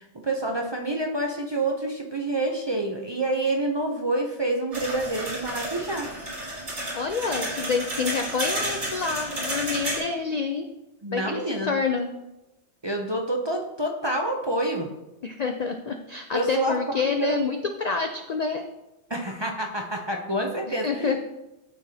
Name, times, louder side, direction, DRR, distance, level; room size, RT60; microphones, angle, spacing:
voice 1, 0.0-6.1 11.0-11.7 12.8-14.9 16.3-17.4 19.1-21.2, right 1 dB, 30° right, 1 dB, 0.5 m, -27 dB
sound 1, 4.7-10.0, right 1 dB, 75° right, 2.3 m, -31 dB
voice 2, 6.9-10.6 11.1-12.1 15.2-18.6 20.7-21.2, left 5 dB, 60° left, 5 dB, 0.4 m, -28 dB
12.5 x 4.7 x 2.7 m, 0.97 s
omnidirectional pair, 1.2 m